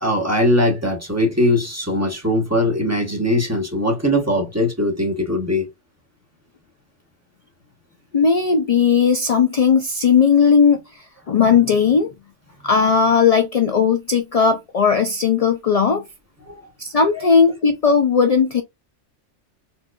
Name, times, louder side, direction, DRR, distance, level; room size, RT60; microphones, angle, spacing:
voice 1, 0.0-5.7 16.5-16.6 17.1-17.3, left 1 dB, 15° right, 1.0 m, -20 dB
voice 2, 8.1-12.1 12.6-16.0 16.8-18.6, left 6 dB, 65° left, 0.3 m, -17 dB
4.4 x 2.5 x 2.3 m
omnidirectional pair, 1.2 m